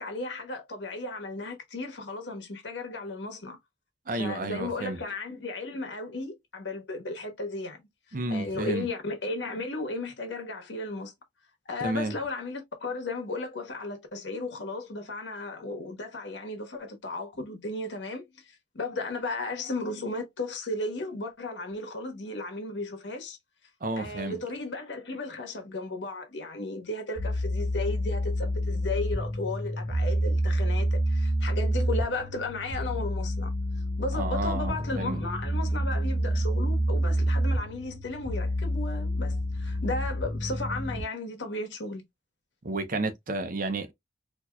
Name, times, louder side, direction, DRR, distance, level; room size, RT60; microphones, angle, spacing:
voice 1, 0.0-3.6 4.1-7.8 8.3-11.1 11.6-23.4 24.0-33.5 34.0-42.1, left 2 dB, 85° left, 1.2 m, -35 dB
voice 2, 4.1-5.0 8.1-8.9 11.8-12.1 23.8-24.4 34.1-35.2 42.6-43.9, right 2 dB, 50° right, 0.8 m, -31 dB
sound 1, 27.2-41.0, equal, 10° right, 1.1 m, -28 dB
4.3 x 2.9 x 2.2 m
head